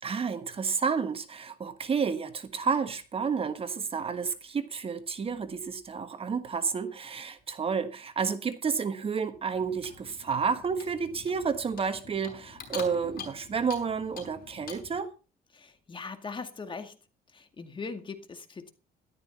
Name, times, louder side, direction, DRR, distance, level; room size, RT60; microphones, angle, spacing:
voice 1, 0.0-15.1, right 5 dB, 35° right, 1.5 m, -31 dB
Clock, 9.5-15.0, left 7 dB, 60° left, 5.5 m, -46 dB
voice 2, 15.5-17.0 17.3-18.7, left 4 dB, 30° left, 2.1 m, -40 dB
13.5 x 12.5 x 4.2 m
cardioid pair, 110°, 17 cm